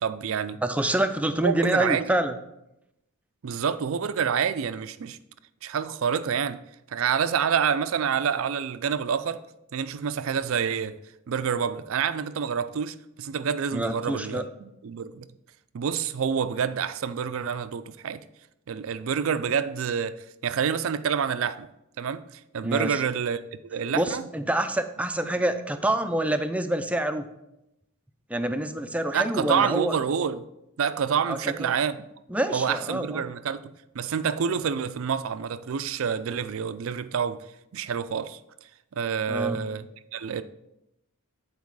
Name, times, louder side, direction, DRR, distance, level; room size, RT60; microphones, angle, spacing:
voice 1, 0.0-0.6 1.4-2.0 3.4-5.2 5.6-6.6 6.9-9.4 9.7-10.9 11.3-15.3 15.7-18.2 18.7-20.2 20.4-21.7 22.0-22.2 22.5-23.4 23.7-24.2 29.1-30.4 30.8-32.0 32.5-33.6 33.9-37.4 37.7-38.4 38.9-39.9 40.1-40.4, right 7 dB, 65° right, 0.4 m, -27 dB
voice 2, 0.6-2.4 13.7-14.4 22.6-23.0 23.9-27.3 28.3-30.0 31.3-31.7 32.3-33.2 39.3-39.6, right 1 dB, 5° right, 0.4 m, -27 dB
9.4 x 4.6 x 4.7 m
head